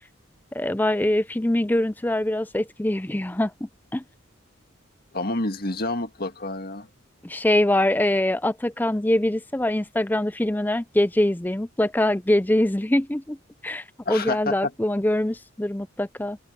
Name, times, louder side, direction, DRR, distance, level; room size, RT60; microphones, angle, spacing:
voice 1, 0.5-4.0 7.2-13.4 13.6-16.4, left 1 dB, 10° left, 0.5 m, -23 dB
voice 2, 5.1-6.9 14.1-14.7, left 2 dB, 50° left, 1.9 m, -28 dB
head